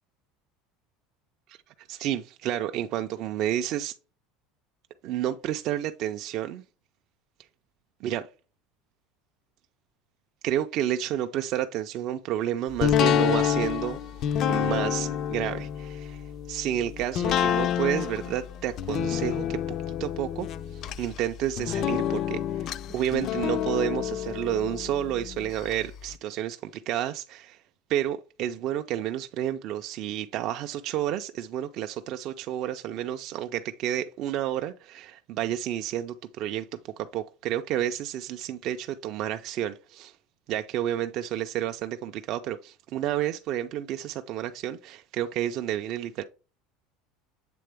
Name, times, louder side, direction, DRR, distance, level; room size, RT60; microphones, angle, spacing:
voice 1, 1.5-3.9 5.0-6.6 8.0-8.3 10.4-14.0 14.4-16.2 16.5-19.6 19.9-27.6 27.9-36.7 37.0-40.2 40.5-46.2, right 11 dB, 40° right, 0.3 m, -30 dB
sound 1, 12.8-25.7 26.1-26.2, left 10 dB, 35° left, 0.3 m, -28 dB
7.6 x 3.7 x 3.4 m
cardioid pair, 170°, 0 cm